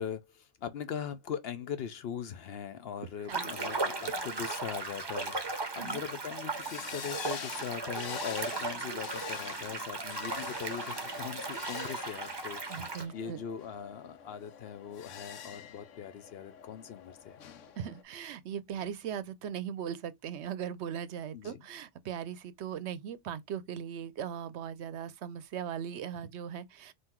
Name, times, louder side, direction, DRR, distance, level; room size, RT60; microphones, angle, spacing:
voice 1, 0.0-17.4 21.3-21.6, left 8 dB, 65° left, 0.7 m, -40 dB
sound 1, 3.3-13.0, right 3 dB, 25° right, 0.6 m, -36 dB
sound 2, 6.6-18.0, left 9 dB, 85° left, 1.0 m, -46 dB
voice 2, 12.7-13.4 17.8-26.9, right 8 dB, 70° right, 0.8 m, -39 dB
3.8 x 2.6 x 4.3 m
omnidirectional pair, 1.3 m